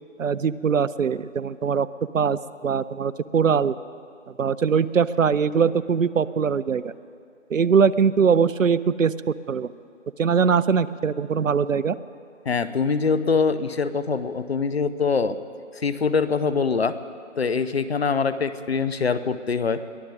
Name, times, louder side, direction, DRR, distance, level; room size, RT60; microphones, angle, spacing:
voice 1, 0.2-1.9 2.1-3.8 4.4-6.9 7.5-9.7 10.2-12.0, right 6 dB, 75° right, 18 dB, 0.6 m, -21 dB
voice 2, 12.5-15.4 15.7-17.0 17.4-19.8, left 5 dB, 50° left, 13 dB, 0.7 m, -23 dB
22.5 x 15.5 x 3.9 m, 2.3 s
figure-of-eight pair, 155°, 39 cm